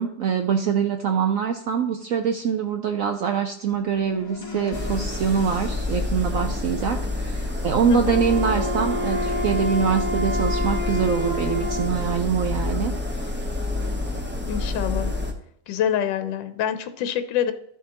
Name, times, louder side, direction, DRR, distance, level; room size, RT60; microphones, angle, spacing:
voice 1, 0.0-12.9, right 7 dB, 75° right, 6 dB, 0.7 m, -24 dB
sound 1, 3.7-6.8 7.7-10.6, left 2 dB, 65° left, 1.8 m, -40 dB
sound 2, 4.7-15.3, left 2 dB, 10° right, 0.5 m, -28 dB
voice 2, 7.9-8.2 14.5-15.1 15.7-17.5, left 9 dB, 80° left, 9 dB, 1.3 m, -26 dB
Wind instrument woodwind instrument, 8.0-12.1, left 1 dB, 45° right, 1.3 m, -29 dB
13.0 x 7.3 x 2.9 m, 0.71 s
omnidirectional pair, 2.0 m